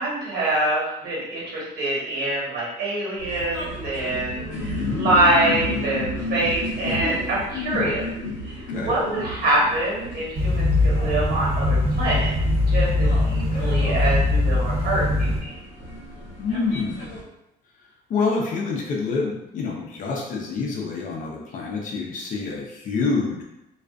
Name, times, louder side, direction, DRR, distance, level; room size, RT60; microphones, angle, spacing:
voice 1, 0.0-8.0 8.4-15.5, right 1 dB, 70° right, -5 dB, 1.2 m, -25 dB
sound 1, 3.2-17.2, left 1 dB, 90° left, 0.8 m, -33 dB
voice 2, 4.1-5.1 7.5-7.9 8.7-8.9 16.4-17.1 18.1-23.4, left 4 dB, 50° left, -1 dB, 0.6 m, -27 dB
sound 2, 10.3-15.4, left 2 dB, 35° right, 0.9 m, -21 dB
2.4 x 2.3 x 2.3 m, 0.86 s
cardioid pair, 110°, 17 cm